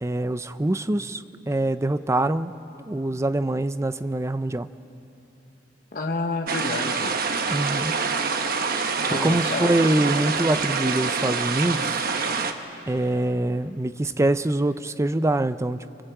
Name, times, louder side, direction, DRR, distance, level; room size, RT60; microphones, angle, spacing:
voice 1, 0.0-2.5 2.9-4.7 7.5-8.0 9.1-12.1 12.9-15.8, right 1 dB, 15° right, 13 dB, 0.5 m, -24 dB
voice 2, 5.9-7.1 9.0-9.8, left 3 dB, 50° left, 2 dB, 1.1 m, -29 dB
sound 1, 6.5-12.5, right 5 dB, 50° right, 1.2 m, -26 dB
24.5 x 24.0 x 7.9 m, 3.0 s
head